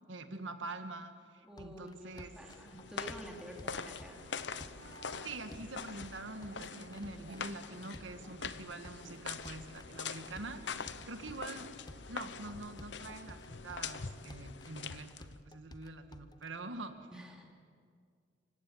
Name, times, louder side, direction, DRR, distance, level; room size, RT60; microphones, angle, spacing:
voice 1, 0.1-2.3 5.2-11.7 12.1-17.1, right 2 dB, 85° right, 8 dB, 1.8 m, -45 dB
voice 2, 1.4-4.3 17.1-17.4, right 1 dB, 5° right, 0 dB, 2.7 m, -49 dB
sound 1, 1.6-16.5, left 1 dB, 20° left, 0.8 m, -54 dB
sound 2, 2.1-15.4, left 6 dB, 65° left, 0.9 m, -44 dB
sound 3, 2.7-13.5, right 2 dB, 60° right, 1.0 m, -58 dB
26.5 x 16.0 x 9.8 m, 2.2 s
head